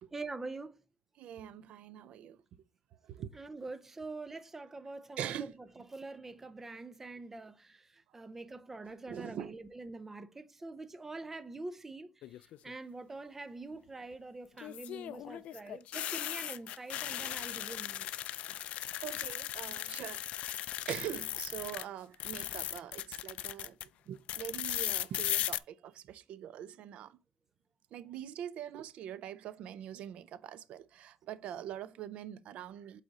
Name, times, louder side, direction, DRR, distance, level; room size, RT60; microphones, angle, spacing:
voice 1, 0.1-0.8 3.3-5.5 5.8-12.2 12.6-18.1, right 3 dB, 15° right, 0.6 m, -45 dB
voice 2, 1.2-2.4 3.0-3.4 5.2-5.5 9.1-9.6 15.5-15.7 19.0-20.6 20.9-23.8 24.1-27.2 27.9-33.0, right 10 dB, 70° right, 0.5 m, -43 dB
sound 1, 12.2-12.7 14.6-21.8 22.1-23.8 24.3-25.6, left 13 dB, 70° left, 0.3 m, -37 dB
8.0 x 4.2 x 3.7 m
cardioid pair, 160°, 2 cm